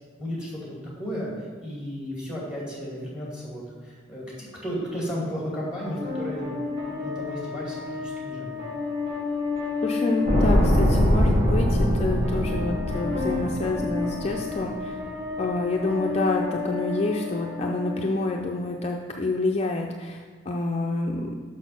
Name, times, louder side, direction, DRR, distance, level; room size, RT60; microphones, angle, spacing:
voice 1, 0.2-8.7, equal, 5° right, -5 dB, 2.4 m, -34 dB
sound 1, 5.8-18.8, left 4 dB, 60° right, 2.8 m, -32 dB
voice 2, 9.8-15.0 15.4-21.4, left 2 dB, 35° left, 1 dB, 0.4 m, -28 dB
sound 2, 10.3-14.5 14.8-14.9, equal, 35° right, 1.7 m, -22 dB
6.3 x 6.1 x 5.8 m, 1.5 s
head